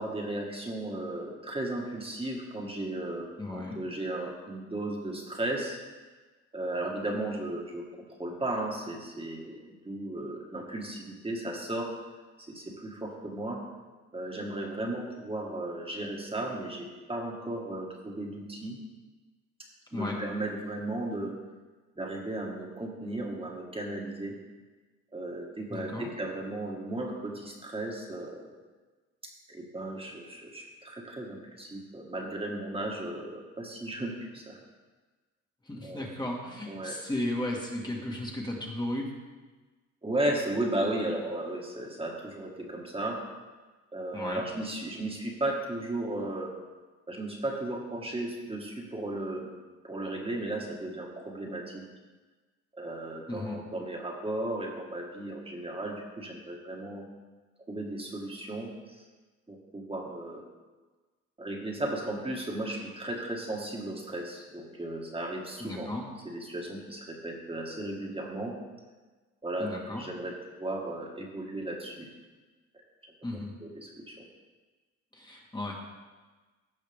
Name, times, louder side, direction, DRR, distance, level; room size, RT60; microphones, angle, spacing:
voice 1, 0.0-5.8 6.5-7.8 8.2-9.6 9.9-11.9 12.5-13.6 14.1-18.8 19.9-21.3 22.0-24.3 25.1-28.5 29.5-34.6 35.8-36.0 36.7-37.0 40.0-43.2 43.9-46.5 47.1-49.5 49.8-51.8 52.7-57.0 57.7-59.0 59.5-60.4 61.4-65.9 66.3-68.5 69.4-70.3 70.6-72.1 73.0-73.1 73.6-74.3, right 1 dB, 20° right, 0 dB, 1.9 m, -35 dB
voice 2, 3.4-3.8 19.9-20.2 25.7-26.1 35.6-39.1 44.1-44.5 53.3-53.6 65.6-66.1 69.6-70.0 73.2-73.5 75.1-75.8, left 1 dB, 15° left, -1 dB, 1.8 m, -35 dB
15.5 x 5.6 x 3.6 m, 1.3 s
cardioid pair, 90°, 30 cm